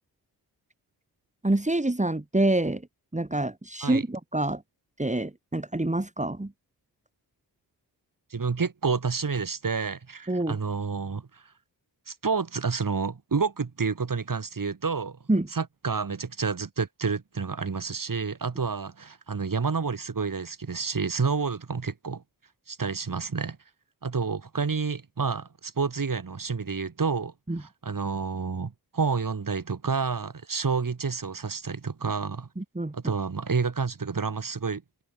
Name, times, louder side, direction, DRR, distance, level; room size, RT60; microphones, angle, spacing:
voice 1, 1.4-2.8 3.1-4.6 5.0-6.5 10.3-10.6 15.3-15.5 27.5-27.6 32.6-32.9, right 2 dB, 15° right, 5.2 m, -26 dB
voice 2, 8.3-11.4 12.1-15.2 15.5-22.2 22.7-23.6 24.0-27.3 27.6-32.5 32.9-34.8, right 5 dB, 50° right, 6.7 m, -29 dB
cardioid pair, 55°, 41 cm